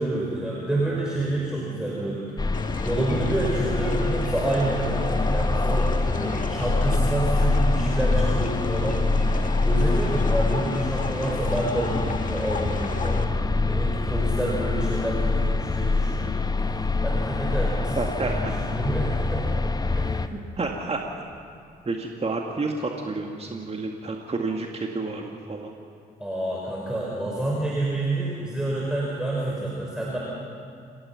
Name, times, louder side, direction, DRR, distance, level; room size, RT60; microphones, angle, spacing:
voice 1, 0.0-9.0 9.6-13.3 13.7-19.5 19.9-20.2 26.2-30.2, right 1 dB, 5° right, -5 dB, 5.5 m, -28 dB
sound 1, 2.4-20.3, left 3 dB, 20° left, 1.0 m, -25 dB
sound 2, 2.5-13.2, left 4 dB, 40° left, 1.8 m, -36 dB
voice 2, 18.0-18.6 20.3-21.0 21.8-25.7, right 3 dB, 30° right, 2 dB, 2.0 m, -30 dB
27.0 x 18.0 x 5.9 m, 2.5 s
figure-of-eight pair, 45°, 21 cm